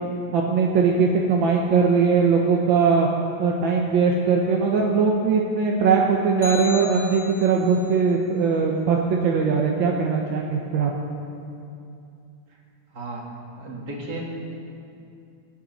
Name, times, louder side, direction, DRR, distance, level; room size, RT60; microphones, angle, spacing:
voice 1, 0.3-3.1 3.4-10.9, right 5 dB, 80° right, 0 dB, 1.7 m, -20 dB
sound 1, 6.4-7.8, left 4 dB, 20° left, 2.6 m, -35 dB
voice 2, 12.9-13.2 13.5-14.5, right 1 dB, 60° right, -2 dB, 2.6 m, -34 dB
21.5 x 9.2 x 4.1 m, 2.6 s
omnidirectional pair, 2.1 m